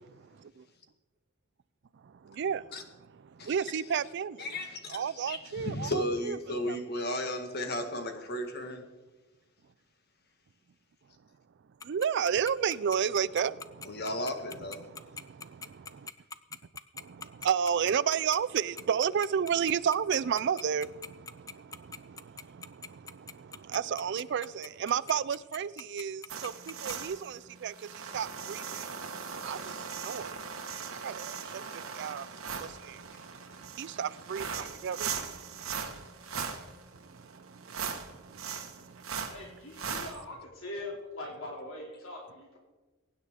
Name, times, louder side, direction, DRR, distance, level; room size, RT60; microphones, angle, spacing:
voice 1, 0.1-0.6 2.0-4.6 4.9-6.8 11.8-14.0 14.8-16.1 16.9-28.9 29.4-30.4 30.9-35.1 36.3-36.4 36.9-39.3, right 7 dB, 55° right, 0.4 m, -33 dB
voice 2, 4.4-5.0 5.3-8.8 13.9-14.8, left 1 dB, 50° left, 1.7 m, -34 dB
Tick-tock, 11.8-26.9, left 5 dB, 15° left, 0.4 m, -42 dB
sound 1, 26.3-40.1, right 6 dB, 80° right, 1.5 m, -39 dB
voice 3, 39.3-42.6, left 1 dB, 75° left, 2.8 m, -42 dB
22.5 x 9.5 x 3.7 m
head